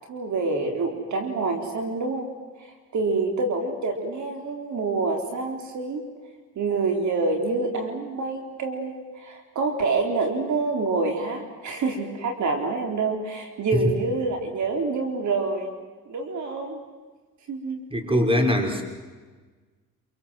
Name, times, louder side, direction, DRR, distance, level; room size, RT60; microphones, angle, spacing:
voice 1, 0.1-2.3 2.6-6.0 6.6-15.7 16.1-16.8 17.5-17.8, right 3 dB, 60° right, 4 dB, 4.0 m, -27 dB
voice 2, 17.9-18.8, equal, 15° right, 4 dB, 5.2 m, -22 dB
27.5 x 23.5 x 7.7 m, 1.4 s
cardioid pair, 90°, 33 cm